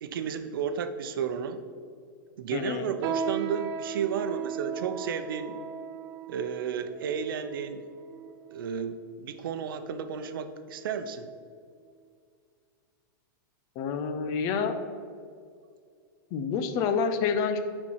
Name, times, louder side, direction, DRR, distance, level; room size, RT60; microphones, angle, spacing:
voice 1, 0.0-1.6 2.4-5.6 6.3-7.8 8.5-11.3, right 7 dB, 80° right, 9 dB, 0.7 m, -32 dB
voice 2, 2.5-2.9 13.8-14.8 16.3-17.6, left 6 dB, 35° left, 8 dB, 0.6 m, -28 dB
sound 1, 3.0-8.7 9.4-9.5 10.2-10.5 10.9-11.1 11.8-11.9, right 7 dB, 30° right, 0.4 m, -37 dB
9.7 x 4.4 x 4.6 m, 2.2 s
supercardioid pair, 160°, 11 cm